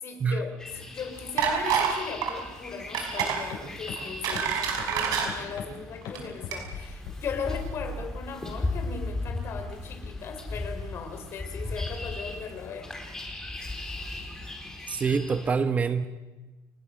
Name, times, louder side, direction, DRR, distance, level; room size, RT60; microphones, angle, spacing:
voice 1, 0.0-13.0, left 6 dB, 40° left, 7 dB, 3.7 m, -38 dB
sound 1, 0.6-15.5, left 2 dB, 10° left, 4.1 m, -38 dB
sound 2, 1.4-2.0 2.2-2.4 2.9-3.4 3.9-5.3 6.0-6.2 6.5-6.6, right 7 dB, 70° right, 5.4 m, -27 dB
sound 3, 3.2-3.3 3.5-3.6 3.9-4.0 4.3-4.4 4.8-4.9 5.2-5.6 6.0-6.1 6.4-6.8 7.1-7.2 7.5-8.0, left 7 dB, 75° left, 7.9 m, -37 dB
voice 2, 14.9-16.1, right 5 dB, 20° right, 10 dB, 0.9 m, -26 dB
29.0 x 19.5 x 6.3 m, 1.2 s
cardioid pair, 170°, 6 cm